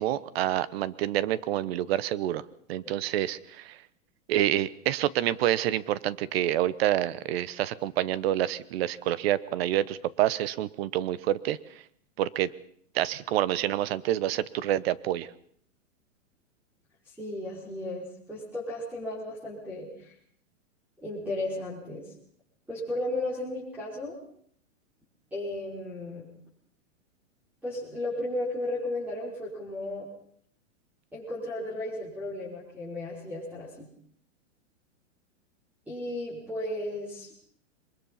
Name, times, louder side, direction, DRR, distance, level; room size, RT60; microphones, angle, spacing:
voice 1, 0.0-2.4 2.7-3.8 4.3-11.6 12.2-12.5 12.9-15.3, right 13 dB, 50° right, 18 dB, 1.1 m, -27 dB
voice 2, 17.1-20.1 21.0-22.1 22.7-24.2 25.3-26.3 27.6-30.1 31.1-33.9 35.9-37.3, left 1 dB, 5° right, -6 dB, 5.7 m, -34 dB
23.0 x 21.0 x 5.7 m, 0.65 s
hypercardioid pair, 145°, 39 cm